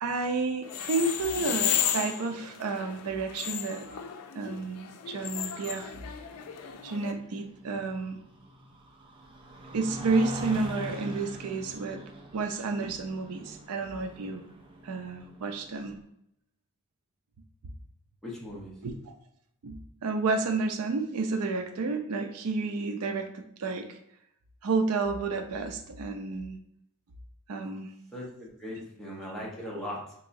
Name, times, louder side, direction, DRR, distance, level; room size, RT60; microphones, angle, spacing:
voice 1, 0.0-3.9 4.3-5.9 6.8-8.2 9.7-12.0 12.3-14.4 14.8-15.9 18.8-19.1 19.6-24.0 24.6-26.6 27.5-27.9, right 3 dB, 85° right, 6 dB, 0.4 m, -31 dB
sound 1, 0.6-7.1, left 9 dB, 90° left, 0.4 m, -34 dB
sound 2, 5.5-16.0, equal, 25° right, 0.3 m, -44 dB
voice 2, 18.2-18.7 28.1-30.1, left 1 dB, ahead, -5 dB, 0.7 m, -39 dB
3.7 x 2.9 x 2.6 m, 0.74 s
head